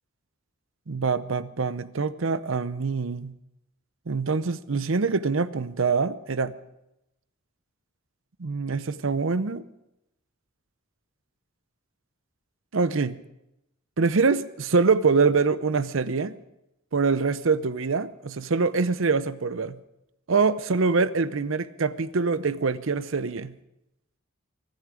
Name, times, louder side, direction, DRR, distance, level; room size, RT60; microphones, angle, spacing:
voice 1, 0.9-3.3 4.1-6.5 8.4-9.6 12.7-13.2 14.0-16.3 16.9-19.8 20.3-23.5, right 4 dB, 65° right, 15 dB, 0.7 m, -24 dB
23.5 x 10.5 x 5.0 m, 0.87 s
head